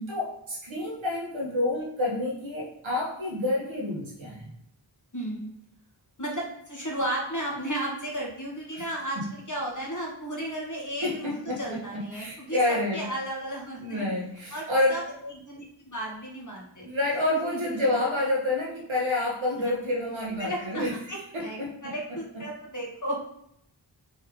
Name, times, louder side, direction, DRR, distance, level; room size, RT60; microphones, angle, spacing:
voice 1, 0.1-4.5 8.7-8.8 11.0-13.1 13.8-15.0 16.8-20.9 21.3-22.4, left 2 dB, 85° right, -3 dB, 1.5 m, -29 dB
voice 2, 5.1-5.5 6.2-14.0 14.5-16.9 17.3-17.6 19.6-19.7 20.4-20.8 21.1-23.2, right 1 dB, 40° left, -2 dB, 1.5 m, -34 dB
4.4 x 3.3 x 3.7 m, 0.73 s
wide cardioid pair, 45°, 46 cm